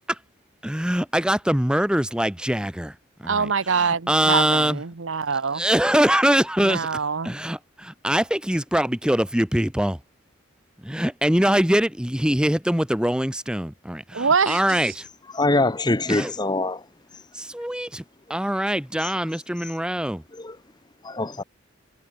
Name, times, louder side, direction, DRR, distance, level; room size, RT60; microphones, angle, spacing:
voice 1, 0.6-2.9 3.2-4.8 5.5-6.9 7.2-10.0 10.8-15.1 16.1-16.3 17.3-18.0 18.3-20.2, equal, 5° right, 1.1 m, -23 dB
voice 2, 3.3-5.6 6.6-7.3 14.1-14.6, right 5 dB, 75° right, 0.9 m, -24 dB
voice 3, 15.3-16.8 20.3-20.6 21.0-21.4, left 2 dB, 20° left, 1.0 m, -23 dB
head